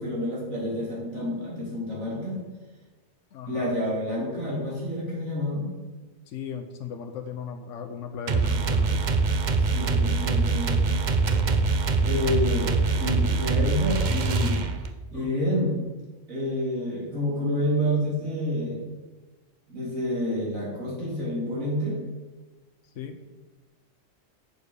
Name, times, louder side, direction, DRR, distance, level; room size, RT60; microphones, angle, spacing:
voice 1, 0.0-2.4 3.5-5.6 9.6-10.9 12.0-14.6 15.1-15.8 16.3-18.8 19.7-22.0, left 1 dB, 90° right, -5 dB, 3.5 m, -28 dB
voice 2, 3.3-3.7 6.3-9.0 15.1-15.3 22.8-23.2, left 7 dB, 70° left, 5 dB, 1.0 m, -37 dB
sound 1, 8.3-15.0, right 4 dB, 45° right, 0.6 m, -24 dB
7.2 x 6.7 x 6.5 m, 1.3 s
omnidirectional pair, 1.4 m